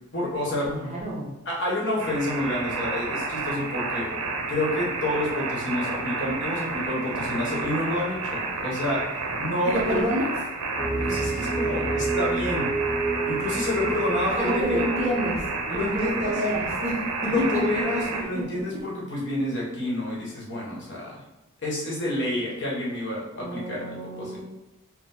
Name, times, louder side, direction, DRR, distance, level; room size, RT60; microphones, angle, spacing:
voice 1, 0.1-0.7 1.4-4.1 4.5-9.0 9.4-10.0 11.0-12.7 13.2-14.8 15.7-16.3 17.2-21.2 21.6-24.4, left 1 dB, 50° left, -4 dB, 1.1 m, -29 dB
voice 2, 0.6-1.3 8.5-8.6 9.6-10.6 14.4-15.4 15.7-18.4 23.4-24.4, equal, 30° right, -6 dB, 1.0 m, -29 dB
sound 1, 2.0-18.2, right 3 dB, 85° right, 0.6 m, -31 dB
sound 2, 10.8-15.9, right 3 dB, 5° right, 1.1 m, -29 dB
4.5 x 2.2 x 3.8 m, 0.95 s
head